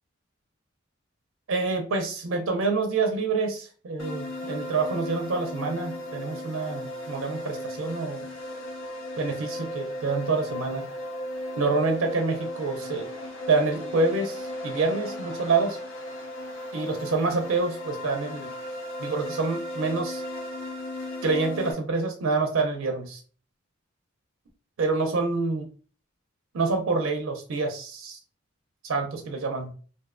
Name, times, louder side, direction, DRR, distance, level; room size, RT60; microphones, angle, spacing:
voice 1, 1.5-8.2 9.2-10.9 11.6-13.1 13.5-15.8 16.7-18.5 19.0-20.2 21.2-23.2 24.8-25.7 26.5-28.2 28.8-29.7, right 3 dB, 80° right, 4 dB, 0.4 m, -27 dB
sound 1, 4.0-21.7, left 1 dB, 65° left, 0.5 m, -36 dB
2.5 x 2.1 x 2.3 m, 0.39 s
head